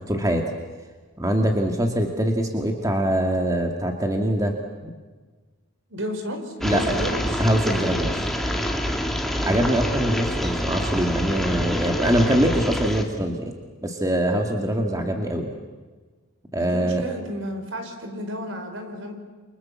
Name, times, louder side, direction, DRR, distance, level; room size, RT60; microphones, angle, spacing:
voice 1, 0.1-0.4 1.2-4.6 4.8-4.9 6.6-6.8 7.4-8.3 9.4-13.5 13.8-15.5 16.5-17.0, right 1 dB, 15° right, 3 dB, 2.1 m, -23 dB
voice 2, 5.9-7.4 16.5-19.1, equal, 65° right, 5 dB, 4.9 m, -32 dB
sound 1, 6.6-13.0, equal, ahead, 2.2 m, -26 dB
29.0 x 25.0 x 7.4 m, 1.4 s
head